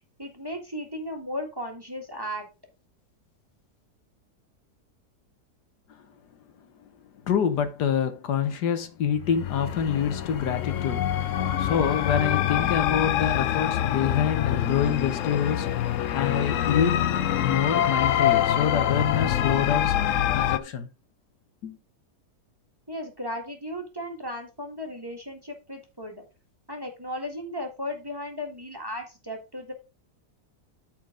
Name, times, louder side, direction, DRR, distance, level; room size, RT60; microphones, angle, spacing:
voice 1, 0.2-2.5 22.9-26.2 26.7-29.7, left 1 dB, 15° right, 1.7 m, -35 dB
voice 2, 7.3-17.0 17.4-19.9 20.3-20.9 21.6-21.8, left 8 dB, 80° left, 1.6 m, -27 dB
sound 1, 9.1-20.6, left 11 dB, 65° left, 0.9 m, -25 dB
13.5 x 4.5 x 3.8 m
omnidirectional pair, 1.7 m